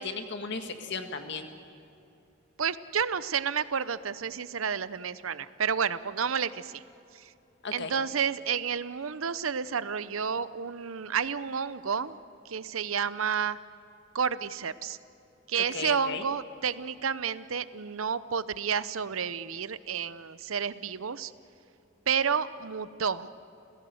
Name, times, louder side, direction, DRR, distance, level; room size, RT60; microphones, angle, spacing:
voice 1, 0.0-1.5 7.6-7.9 15.7-16.2, left 4 dB, 60° left, 6 dB, 1.8 m, -35 dB
voice 2, 2.6-6.8 7.1-7.3 7.7-12.2 12.4-13.6 14.1-15.0 15.5-21.3 22.1-23.3, right 7 dB, 85° right, 15 dB, 0.7 m, -30 dB
30.0 x 16.0 x 7.9 m, 2.7 s
head